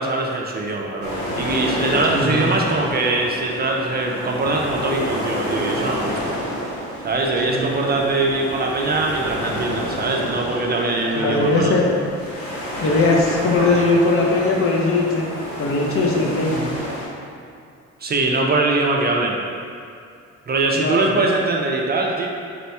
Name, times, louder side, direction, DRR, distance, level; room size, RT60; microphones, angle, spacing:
voice 1, 0.0-6.3 7.0-11.7 18.0-19.4 20.5-22.3, right 2 dB, 35° right, -1 dB, 0.4 m, -22 dB
sound 1, 1.0-17.1, equal, 85° left, 1.2 m, -29 dB
voice 2, 2.1-2.6 7.5-8.0 11.1-11.9 12.8-16.7 20.8-21.1, left 2 dB, 45° left, -1 dB, 0.7 m, -20 dB
4.3 x 2.2 x 4.1 m, 2.4 s
cardioid pair, 90°, 30 cm